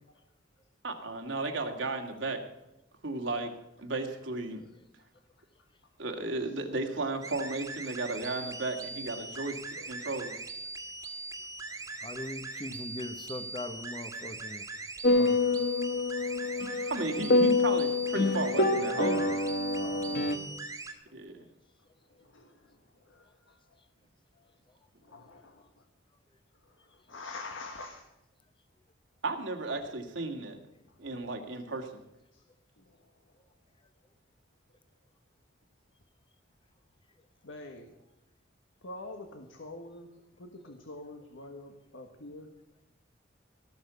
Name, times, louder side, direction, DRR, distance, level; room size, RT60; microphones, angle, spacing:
voice 1, 0.8-2.4 3.0-3.5 3.8-4.6 6.0-9.6 9.9-10.4 16.9-19.4 21.1-21.4 29.2-30.6 31.0-31.9, right 2 dB, 70° right, 3 dB, 2.0 m, -34 dB
sound 1, 7.2-20.9, right 3 dB, 15° right, 1.7 m, -41 dB
voice 2, 12.0-14.6 15.1-15.4 19.8-20.5, left 1 dB, 25° left, 10 dB, 1.0 m, -41 dB
sound 2, 15.0-20.4, left 2 dB, 55° left, 1.1 m, -26 dB
voice 3, 22.1-23.8 24.4-24.5 25.0-25.8 26.6-28.1 30.9-31.0 32.3-32.4 32.8-33.1 37.4-38.0 38.8-40.1 40.4-42.5, left 2 dB, 85° left, 5 dB, 1.5 m, -46 dB
17.5 x 6.5 x 8.1 m, 0.92 s
head